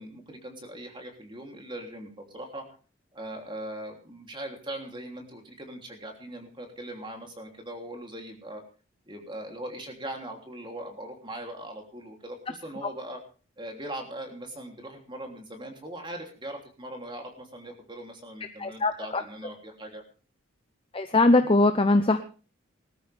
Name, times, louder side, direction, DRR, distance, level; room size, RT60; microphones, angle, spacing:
voice 1, 0.0-2.6 3.1-8.6 9.1-13.2 13.6-20.0, right 1 dB, 25° right, 3 dB, 3.1 m, -40 dB
voice 2, 18.6-19.2 20.9-22.2, left 2 dB, 25° left, 8 dB, 0.7 m, -21 dB
20.0 x 13.5 x 3.5 m, 0.37 s
head